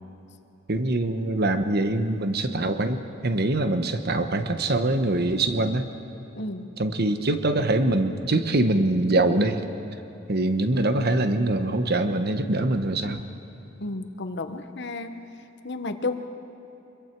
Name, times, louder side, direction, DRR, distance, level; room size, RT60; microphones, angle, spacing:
voice 1, 0.7-5.8 6.8-9.6 10.3-13.2, right 2 dB, 55° right, 8 dB, 1.1 m, -24 dB
voice 2, 6.3-6.7 13.8-15.2 15.6-16.2, left 2 dB, 60° left, 8 dB, 1.1 m, -32 dB
25.5 x 22.0 x 4.7 m, 3.0 s
head